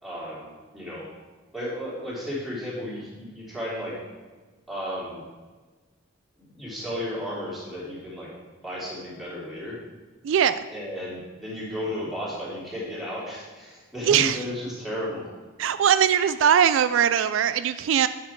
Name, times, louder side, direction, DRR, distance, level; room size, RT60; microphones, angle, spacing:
voice 1, 0.0-1.1 1.5-4.0 4.7-5.2 6.4-8.3 8.6-9.8 10.7-15.2, equal, ahead, -8 dB, 3.1 m, -34 dB
voice 2, 10.2-10.6 14.1-14.4 15.6-18.1, right 8 dB, 70° right, 12 dB, 0.3 m, -20 dB
9.7 x 6.6 x 4.6 m, 1.3 s
head